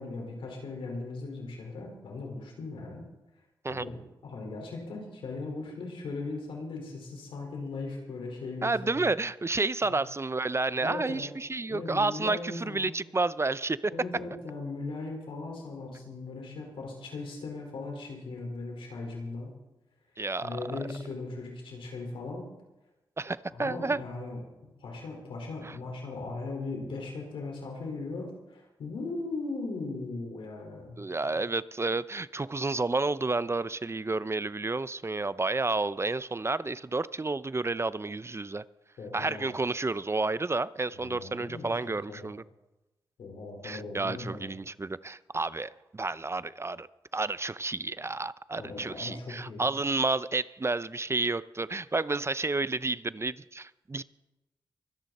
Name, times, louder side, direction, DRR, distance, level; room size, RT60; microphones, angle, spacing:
voice 1, 0.0-3.1 3.7-9.1 9.8-10.0 10.8-11.3 11.7-13.0 13.9-19.5 20.4-22.5 23.5-24.4 24.8-31.0 39.0-39.6 40.9-42.3 43.2-44.6 48.6-49.7, left 3 dB, 85° left, 0 dB, 4.7 m, -38 dB
voice 2, 8.6-13.8 20.2-20.6 23.2-24.0 25.6-25.7 31.0-38.6 39.1-42.4 43.6-46.9 47.1-54.0, right 3 dB, 30° right, 17 dB, 0.6 m, -30 dB
24.5 x 10.0 x 4.2 m, 1.0 s
supercardioid pair, 45°, 9 cm